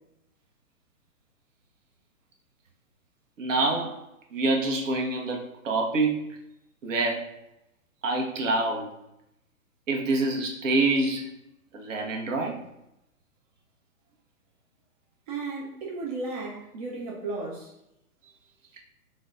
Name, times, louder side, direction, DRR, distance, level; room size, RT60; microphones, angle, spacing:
voice 1, 3.4-4.0 4.3-6.2 6.8-7.2 8.0-8.9 9.9-11.3 11.7-12.6, right 2 dB, 55° right, 0 dB, 1.0 m, -26 dB
voice 2, 15.3-17.7, right 3 dB, 30° right, -3 dB, 0.5 m, -34 dB
4.1 x 2.2 x 3.6 m, 0.84 s
hypercardioid pair, 125°, 45 cm